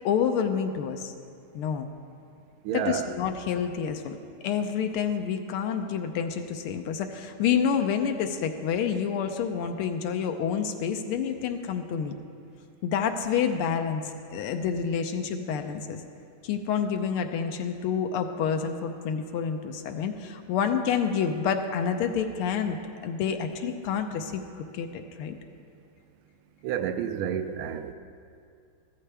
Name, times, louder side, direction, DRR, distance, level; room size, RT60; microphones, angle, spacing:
voice 1, 0.0-1.1 1.5-1.9 2.7-4.2 4.4-12.1 12.8-16.0 16.4-22.8 23.0-25.4, left 7 dB, 85° left, 6 dB, 1.6 m, -28 dB
voice 2, 2.6-3.1 26.6-27.9, right 9 dB, 80° right, 10 dB, 1.4 m, -30 dB
14.0 x 13.5 x 3.4 m, 2.4 s
omnidirectional pair, 2.4 m